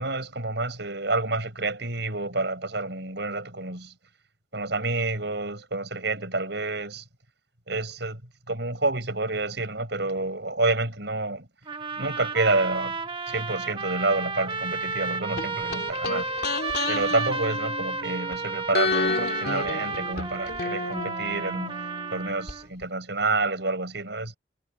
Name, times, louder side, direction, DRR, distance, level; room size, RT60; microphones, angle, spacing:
voice 1, 0.0-3.9 4.5-7.0 7.7-8.2 8.5-11.5 12.0-13.0 13.3-16.3 16.9-21.8 22.1-24.4, right 2 dB, 65° right, 6.8 m, -28 dB
sound 1, 11.7-22.7, right 4 dB, 25° right, 1.3 m, -32 dB
sound 2, 15.4-18.3 18.7-22.5 22.8-22.9, left 3 dB, 55° left, 3.5 m, -31 dB
head